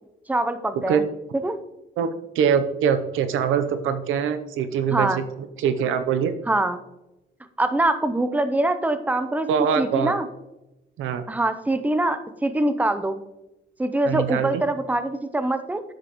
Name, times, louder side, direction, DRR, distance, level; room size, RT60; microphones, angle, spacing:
voice 1, 0.3-1.0 1.4-1.6 4.9-5.2 6.5-6.8 7.6-9.5 9.8-10.3 11.3-13.2 13.8-15.8, right 1 dB, 10° right, 10 dB, 0.6 m, -23 dB
voice 2, 2.3-5.2 5.6-6.3 9.5-10.1 11.0-11.2 14.1-14.6, right 7 dB, 85° right, 10 dB, 0.7 m, -23 dB
10.5 x 7.5 x 3.0 m, 0.95 s
cardioid pair, 90°, 20 cm